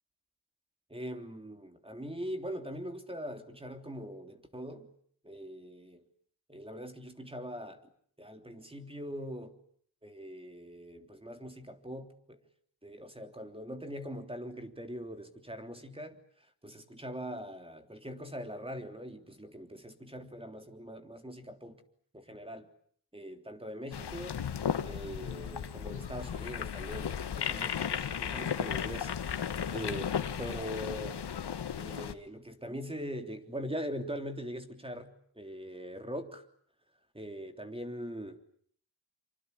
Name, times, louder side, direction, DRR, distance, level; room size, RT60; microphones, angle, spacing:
voice 1, 0.9-4.9 5.2-6.0 6.5-7.8 8.2-9.6 10.0-12.4 12.8-16.2 16.6-21.8 22.1-22.7 23.1-24.4 24.8-27.1 27.4-30.1 30.4-31.2 31.8-36.4 37.1-38.4, equal, 15° right, 5 dB, 3.3 m, -42 dB
sound 1, 23.9-32.1, left 8 dB, 65° left, 2.0 m, -35 dB
26.0 x 26.0 x 8.3 m, 0.62 s
cardioid pair, 85°, 43 cm